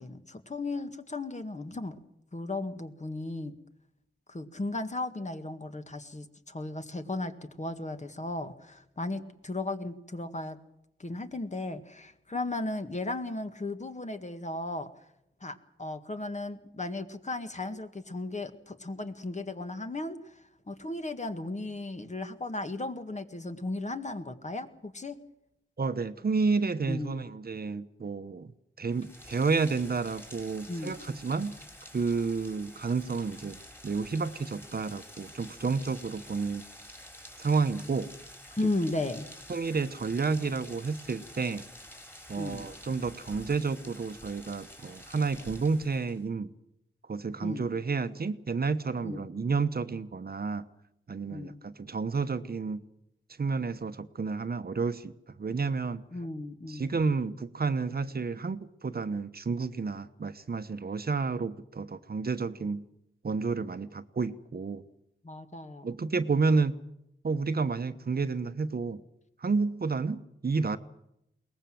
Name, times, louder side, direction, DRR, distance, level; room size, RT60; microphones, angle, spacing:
voice 1, 0.0-2.0 2.3-3.5 4.3-10.6 11.0-15.1 15.4-25.2 26.9-27.3 30.7-31.0 38.6-39.3 42.4-42.7 47.4-47.7 49.0-49.2 51.3-51.6 56.1-56.9 65.2-65.9, left 2 dB, 35° left, 8 dB, 1.9 m, -36 dB
voice 2, 25.8-28.5 28.8-31.6 31.9-36.6 37.4-38.1 39.5-41.6 42.3-46.5 47.1-50.7 51.1-52.8 53.4-55.1 55.4-56.0 56.7-62.8 63.2-64.8 65.8-66.8 67.2-69.0 69.4-70.8, right 4 dB, 50° right, 11 dB, 1.0 m, -30 dB
Rain, 28.9-46.3, left 1 dB, 10° left, 4.1 m, -49 dB
22.0 x 19.5 x 7.7 m, 0.80 s
wide cardioid pair, 80°, 21 cm